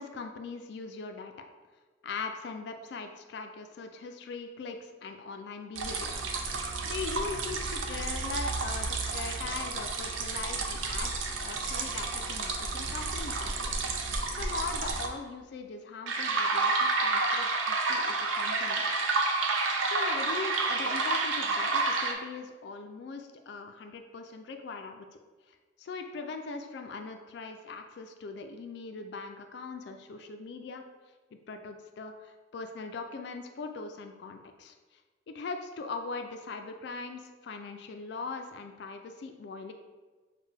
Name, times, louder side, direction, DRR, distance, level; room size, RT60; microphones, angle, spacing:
voice 1, 0.0-1.3 2.0-6.2 6.8-13.7 14.4-18.9 19.9-25.1 25.5-30.8 31.5-34.7 35.3-39.7, left 4 dB, 60° left, 6 dB, 0.3 m, -40 dB
sound 1, 5.8-15.1 16.1-22.1, right 3 dB, 85° right, 0.5 m, -30 dB
6.3 x 2.2 x 3.3 m, 1.3 s
head